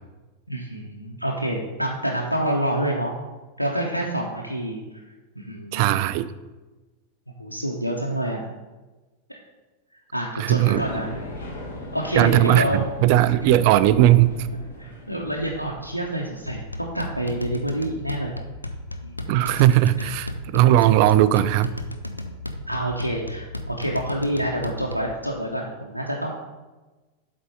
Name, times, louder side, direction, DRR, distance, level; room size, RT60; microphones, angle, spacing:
voice 1, 0.5-3.1 3.6-5.0 5.4-6.0 7.4-8.4 9.3-9.4 10.1-11.1 11.9-12.8 13.4-13.5 14.8-18.3 19.0-19.5 20.0-20.1 20.7-20.9 22.7-26.3, right 1 dB, 90° right, -1 dB, 0.6 m, -28 dB
voice 2, 5.7-6.3 10.4-10.8 12.2-14.4 19.3-21.7, right 13 dB, 45° right, 14 dB, 0.3 m, -18 dB
sound 1, 10.6-17.2, left 1 dB, 60° left, 1.4 m, -38 dB
sound 2, 16.5-25.2, left 1 dB, 85° left, 0.5 m, -35 dB
8.0 x 3.7 x 5.2 m, 1.2 s
figure-of-eight pair, 90°, 0 cm